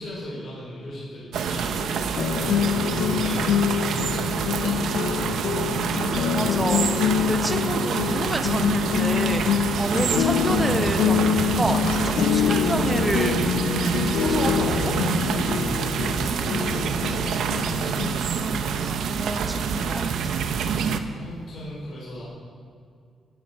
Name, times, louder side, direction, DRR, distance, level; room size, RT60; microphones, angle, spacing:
voice 1, 0.0-5.5 15.3-18.0 21.1-22.2, equal, 45° left, -5 dB, 4.5 m, -38 dB
sound 1, 1.3-21.0, right 6 dB, 80° right, 0.9 m, -26 dB
sound 2, 2.2-18.2, left 9 dB, 85° left, 0.4 m, -25 dB
voice 2, 6.0-13.8 14.2-15.0 18.4-20.4 21.6-21.7, right 1 dB, 10° right, 5 dB, 1.0 m, -29 dB
15.5 x 11.5 x 5.5 m, 2.2 s
wide cardioid pair, 165°, 0 cm